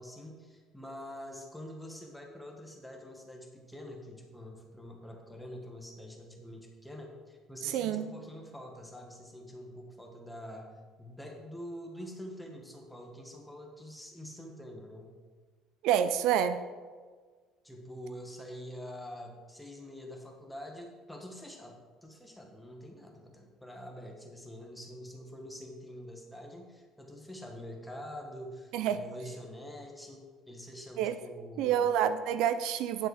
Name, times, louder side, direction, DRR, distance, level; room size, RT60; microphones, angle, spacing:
voice 1, 0.0-15.1 17.6-32.0, equal, 5° left, 1 dB, 1.5 m, -46 dB
voice 2, 7.6-8.1 15.8-16.6 28.7-29.0 31.0-31.1 31.6-33.1, right 9 dB, 75° right, 12 dB, 0.5 m, -28 dB
9.7 x 7.3 x 4.9 m, 1.5 s
cardioid pair, 135°, 0 cm